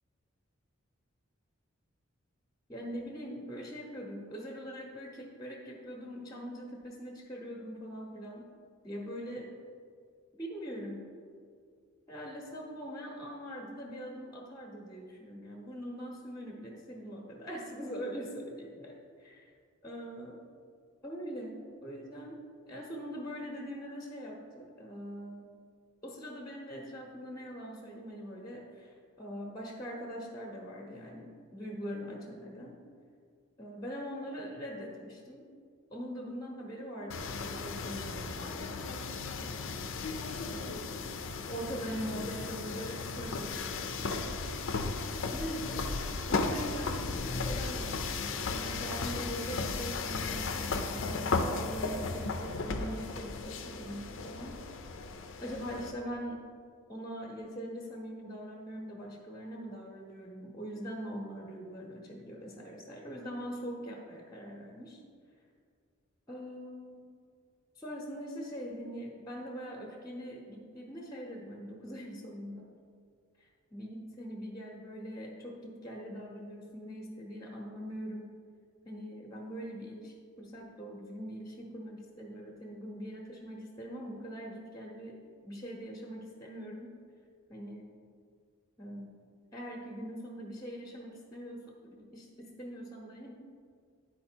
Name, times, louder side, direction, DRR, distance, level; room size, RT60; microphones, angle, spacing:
voice 1, 2.7-8.5 8.8-9.5 10.3-11.0 12.1-19.5 19.8-20.4 21.0-22.4 22.7-25.5 26.0-32.8 33.6-35.4 35.9-39.0 40.4-40.9 41.5-44.2 45.3-45.9 46.3-54.6 55.4-56.4 56.9-65.0 66.3-67.1 67.8-72.7 73.4-78.3 78.8-86.9 87.5-87.9 88.8-89.1 89.5-93.3, equal, 15° left, -1 dB, 0.8 m, -42 dB
sound 1, 37.1-55.9, left 4 dB, 65° left, 0.5 m, -35 dB
10.0 x 4.4 x 4.4 m, 2.2 s
head